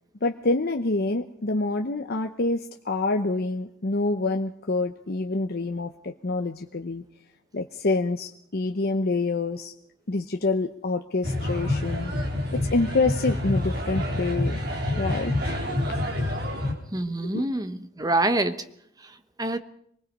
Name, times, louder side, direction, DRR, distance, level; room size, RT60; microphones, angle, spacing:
voice 1, 0.2-7.0 7.5-9.7 10.1-12.1 12.5-14.6 15.0-15.4 17.2-17.4, left 3 dB, 50° left, 5 dB, 0.8 m, -27 dB
sound 1, 11.2-16.7, left 1 dB, 50° right, 3.7 m, -27 dB
voice 2, 16.9-18.6 19.4-19.6, right 2 dB, 20° right, 10 dB, 1.0 m, -25 dB
25.0 x 20.0 x 5.4 m, 0.69 s
head